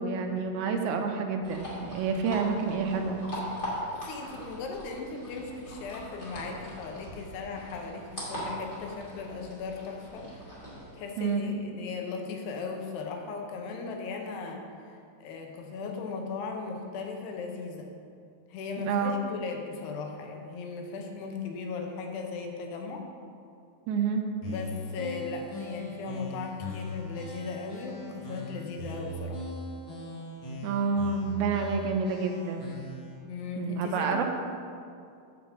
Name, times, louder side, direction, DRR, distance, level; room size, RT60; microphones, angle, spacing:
voice 1, 0.0-3.3 11.2-11.6 18.8-19.2 23.9-24.2 30.6-32.7 33.6-34.2, right 5 dB, 80° right, 4 dB, 2.5 m, -29 dB
sound 1, 1.4-10.9, equal, 20° left, 2.1 m, -40 dB
voice 2, 3.9-10.5 10.9-17.9 18.5-23.1 24.4-29.4 33.3-34.2, left 4 dB, 85° left, 3 dB, 3.1 m, -37 dB
sound 2, 24.4-33.1, left 1 dB, 45° left, 1.7 m, -40 dB
9.4 x 5.1 x 7.4 m, 2.4 s
omnidirectional pair, 4.7 m